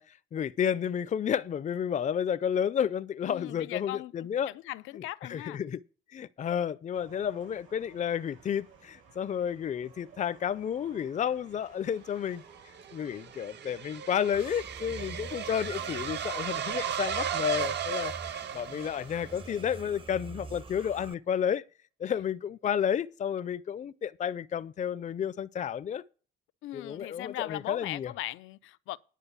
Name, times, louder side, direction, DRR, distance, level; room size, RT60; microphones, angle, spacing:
voice 1, 0.0-4.5 5.3-5.8 6.1-12.4 12.9-21.6 22.0-26.0 26.7-28.1, left 8 dB, 40° left, 0.5 m, -31 dB
voice 2, 3.2-4.1 4.5-5.6 26.6-29.0, left 16 dB, 90° left, 0.5 m, -39 dB
sound 1, 6.9-17.3, right 5 dB, 80° right, 5.2 m, -56 dB
sound 2, 12.3-19.4, right 9 dB, 60° right, 0.8 m, -35 dB
sound 3, 14.3-21.1, right 3 dB, 25° right, 0.7 m, -46 dB
10.0 x 5.2 x 8.1 m
cardioid pair, 90°, 20 cm